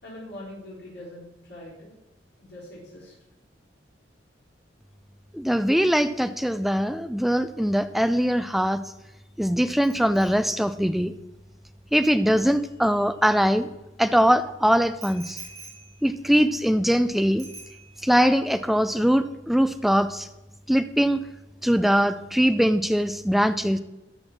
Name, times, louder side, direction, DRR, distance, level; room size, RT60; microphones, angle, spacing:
voice 1, 0.0-1.9 2.4-3.1, left 1 dB, 70° left, -11 dB, 4.0 m, -42 dB
voice 2, 5.3-8.8 9.4-11.1 11.9-13.7 14.0-15.4 16.0-17.5 18.0-20.3 20.7-21.2 21.6-23.8, equal, ahead, 11 dB, 0.3 m, -22 dB
Bicycle bell, 9.8-13.7 15.0-17.0 17.4-18.3 18.5-18.8, right 4 dB, 20° right, 3.4 m, -48 dB
13.0 x 4.6 x 5.8 m, 0.99 s
head